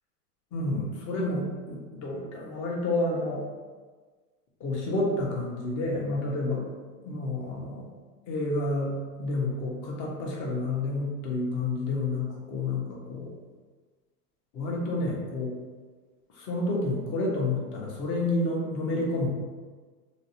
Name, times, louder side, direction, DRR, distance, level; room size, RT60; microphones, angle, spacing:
voice 1, 0.5-3.4 4.6-6.6 7.0-7.9 8.3-13.3 14.5-15.5 16.3-19.3, left 2 dB, 25° left, -2 dB, 0.5 m, -29 dB
2.5 x 2.0 x 2.7 m, 1.4 s
hypercardioid pair, 120°, 47 cm